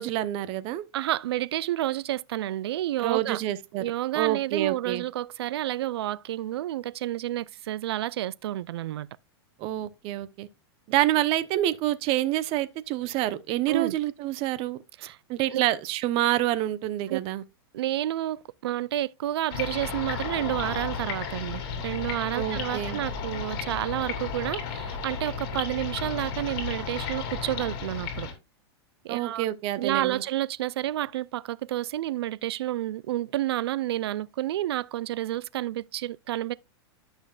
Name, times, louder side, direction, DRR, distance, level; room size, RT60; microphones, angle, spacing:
voice 1, 0.0-0.8 3.0-3.8 4.1-5.0 9.6-10.5 10.9-14.8 15.3-17.4 22.3-23.0 29.1-30.2, right 14 dB, 40° right, 0.9 m, -27 dB
voice 2, 0.9-3.4 3.8-9.1 13.7-14.0 15.0-15.2 15.5-15.6 17.1-17.2 17.7-28.3 29.0-29.4 29.8-36.5, right 14 dB, 70° right, 0.4 m, -30 dB
sound 1, 19.5-28.3, left 6 dB, 55° left, 2.9 m, -33 dB
12.0 x 6.2 x 2.4 m
hypercardioid pair, 120°, 14 cm